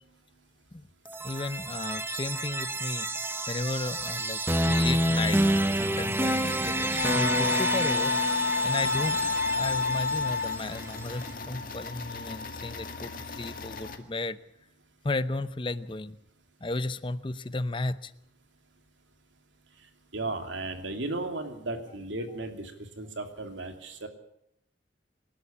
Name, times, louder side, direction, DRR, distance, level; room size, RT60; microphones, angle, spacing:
sound 1, 1.1-11.0, right 1 dB, 10° right, 1.0 m, -29 dB
voice 1, 1.2-3.1 3.5-5.5 5.8-8.2 8.6-14.4 15.0-16.2 16.6-18.1, left 2 dB, 25° left, 14 dB, 0.8 m, -34 dB
sound 2, 7.0-10.6, left 4 dB, 70° left, 1.2 m, -28 dB
sound 3, 8.8-14.0, left 4 dB, 45° left, 2.1 m, -40 dB
voice 2, 20.1-24.1, right 2 dB, 80° right, 5 dB, 2.9 m, -35 dB
27.0 x 11.5 x 8.7 m, 0.74 s
head